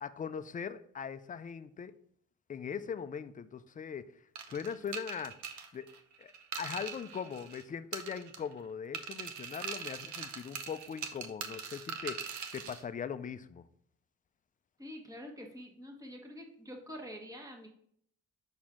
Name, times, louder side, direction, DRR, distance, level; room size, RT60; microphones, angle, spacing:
voice 1, 0.0-1.9 2.5-4.1 4.5-5.4 5.7-5.9 6.2-13.6, left 7 dB, 25° left, 13 dB, 0.4 m, -40 dB
sound 1, 4.4-7.6 7.9-8.6 8.9-12.8, right 6 dB, 70° right, 0.8 m, -42 dB
voice 2, 14.8-17.7, equal, 10° right, 2 dB, 1.3 m, -46 dB
6.0 x 4.3 x 3.7 m, 0.66 s
cardioid pair, 90°, 30 cm